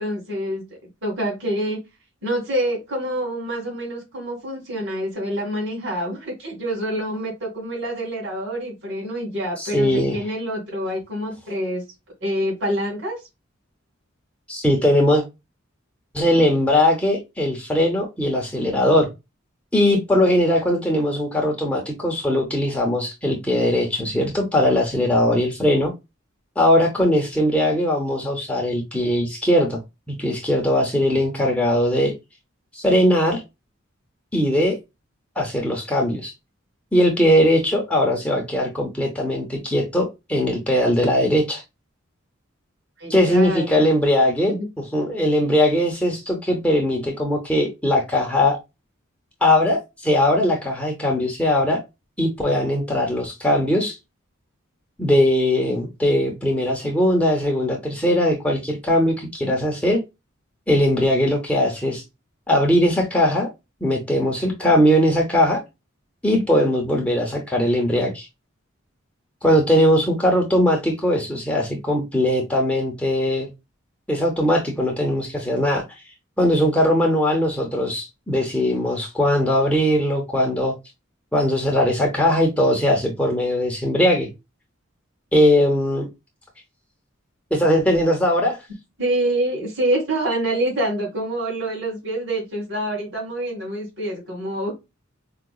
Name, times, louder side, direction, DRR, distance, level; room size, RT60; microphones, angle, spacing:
voice 1, 0.0-1.8 2.2-11.8 12.2-13.2 43.0-43.8 44.5-44.7 89.0-94.7, right 1 dB, 65° right, 2.2 m, -26 dB
voice 2, 9.6-10.2 14.5-15.2 16.1-19.1 19.7-25.9 26.6-29.8 30.1-32.1 32.7-33.4 34.3-34.8 35.4-36.3 36.9-41.6 43.1-48.6 49.4-51.8 52.2-54.0 55.0-60.0 60.7-62.0 62.5-63.5 63.8-65.6 66.2-68.3 69.4-73.5 74.1-75.8 76.4-80.7 81.3-84.3 85.3-86.1 87.5-88.6, left 1 dB, 5° left, 0.8 m, -20 dB
4.7 x 2.3 x 2.2 m
head